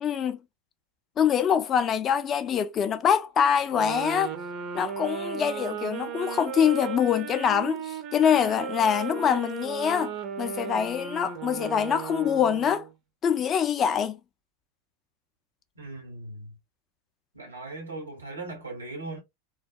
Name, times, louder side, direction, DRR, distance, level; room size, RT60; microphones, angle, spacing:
voice 1, 0.0-0.4 1.2-4.3 4.7-12.8 13.2-14.2, left 8 dB, 30° left, 0.4 m, -24 dB
sound 1, 3.7-12.9, right 8 dB, 45° right, 0.6 m, -36 dB
voice 2, 15.8-16.6 17.3-19.2, right 2 dB, 90° right, 0.9 m, -39 dB
2.3 x 2.2 x 2.5 m
figure-of-eight pair, 90°, 0 cm